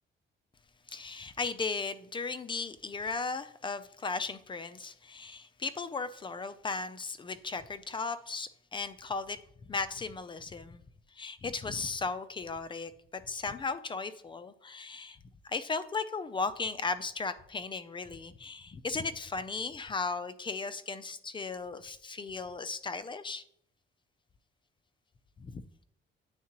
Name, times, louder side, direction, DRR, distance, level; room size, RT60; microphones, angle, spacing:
voice 1, 0.9-9.4 9.7-10.8 11.1-12.9 13.3-15.2 15.4-23.4 25.4-25.6, left 4 dB, 25° left, 0.3 m, -36 dB
8.9 x 3.6 x 2.9 m
cardioid pair, 115°, 21 cm